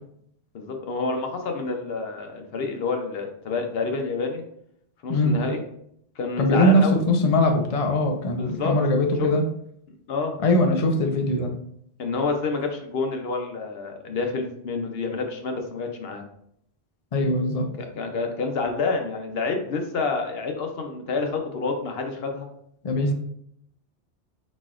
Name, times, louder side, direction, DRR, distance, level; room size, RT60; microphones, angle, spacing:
voice 1, 0.5-4.4 5.0-5.6 6.2-7.0 8.4-8.7 9.2-9.3 10.1-10.4 12.0-16.2 17.8-22.5, left 4 dB, 65° left, 4 dB, 0.9 m, -28 dB
voice 2, 6.4-9.5 10.4-11.5 17.1-17.7 22.8-23.1, left 1 dB, 45° left, 4 dB, 0.5 m, -21 dB
4.3 x 4.1 x 2.4 m, 0.71 s
omnidirectional pair, 1.1 m